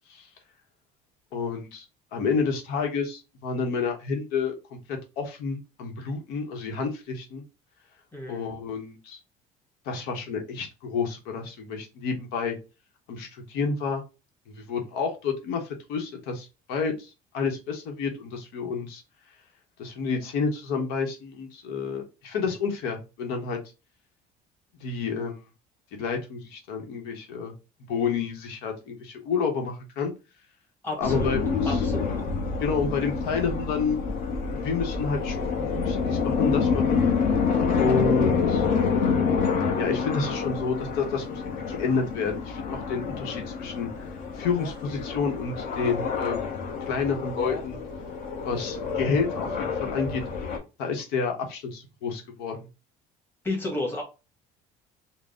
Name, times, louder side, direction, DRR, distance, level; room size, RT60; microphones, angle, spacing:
voice 1, 1.3-1.8 2.1-4.6 4.9-7.4 8.3-9.2 9.9-12.6 13.1-14.0 14.5-19.0 19.8-23.6 24.8-25.4 26.0-27.5 27.9-30.1 31.0-31.8 32.6-34.0 34.5-37.0 37.7-38.6 39.8-47.8 48.5-50.2 50.8-52.6, left 5 dB, 85° left, 1.0 m, -29 dB
voice 2, 8.1-8.5 30.8-31.3 31.6-32.1 53.4-54.0, left 2 dB, 15° left, 1.3 m, -31 dB
sound 1, 31.0-50.6, left 5 dB, 55° left, 1.0 m, -27 dB
3.8 x 2.1 x 3.6 m
cardioid pair, 155°, 16 cm